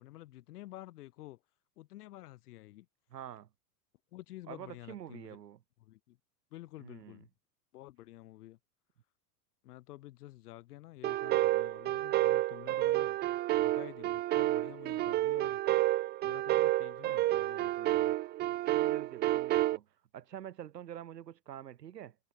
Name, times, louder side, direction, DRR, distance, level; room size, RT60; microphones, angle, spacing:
voice 1, 0.0-1.4 1.8-2.9 4.1-5.4 5.8-6.2 6.5-7.3 7.7-8.6 9.6-13.2 13.5-15.6 16.2-18.2, left 16 dB, 70° left, 7.5 m, -50 dB
voice 2, 3.1-3.5 4.5-5.6 6.8-7.2 18.7-22.2, right 10 dB, 85° right, 1.9 m, -46 dB
sound 1, 11.0-19.8, right 16 dB, 20° right, 0.4 m, -30 dB
hypercardioid pair, 100°, 48 cm